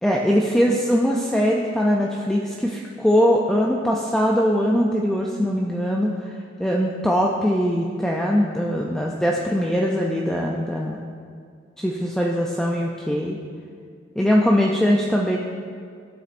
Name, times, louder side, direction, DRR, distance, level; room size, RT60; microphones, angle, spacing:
voice 1, 0.0-6.3 6.6-11.1 11.8-13.4 14.2-15.4, equal, 5° left, -2 dB, 0.4 m, -21 dB
12.5 x 6.9 x 2.5 m, 2.2 s
head